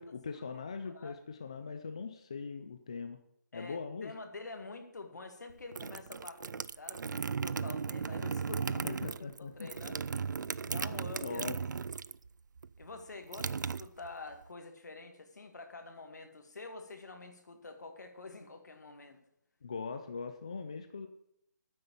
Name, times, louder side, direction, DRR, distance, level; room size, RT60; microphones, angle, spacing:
voice 1, 0.0-3.2 3.5-4.1 8.8-9.7 11.2-11.6 19.6-21.1, left 5 dB, 20° left, 8 dB, 0.4 m, -41 dB
voice 2, 3.5-11.5 12.8-19.2, left 3 dB, 65° left, 6 dB, 2.1 m, -47 dB
sound 1, 5.5-12.3 12.6-14.4, right 5 dB, 80° right, 0.4 m, -36 dB
9.7 x 7.6 x 7.0 m, 0.74 s
hypercardioid pair, 175°, 10 cm